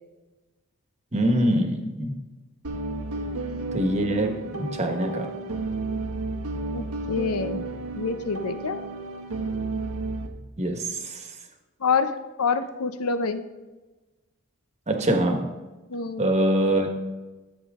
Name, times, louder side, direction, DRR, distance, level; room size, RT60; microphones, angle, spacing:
voice 1, 1.1-2.1 3.7-4.3 4.6-5.3 10.6-11.2 14.9-15.4 16.2-16.9, right 1 dB, 30° right, 3 dB, 1.4 m, -24 dB
sound 1, 2.6-10.3, right 3 dB, 90° right, 1.1 m, -32 dB
voice 2, 3.1-3.6 6.7-7.6 7.9-8.8 11.8-12.1 12.4-13.4 15.9-16.3, left 5 dB, 75° left, 11 dB, 0.7 m, -27 dB
14.0 x 7.3 x 3.7 m, 1.2 s
head